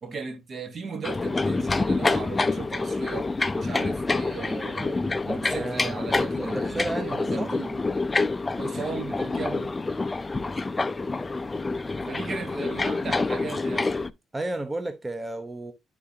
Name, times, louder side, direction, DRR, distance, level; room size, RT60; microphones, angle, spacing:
voice 1, 0.0-7.8 8.6-9.8 12.1-13.9, right 4 dB, 50° right, 1.2 m, -36 dB
sound 1, 1.0-14.1, left 3 dB, 20° left, 0.4 m, -27 dB
voice 2, 5.5-7.5 14.3-15.7, right 2 dB, 20° right, 0.7 m, -33 dB
11.0 x 3.7 x 2.7 m
cardioid pair, 90°, 0 cm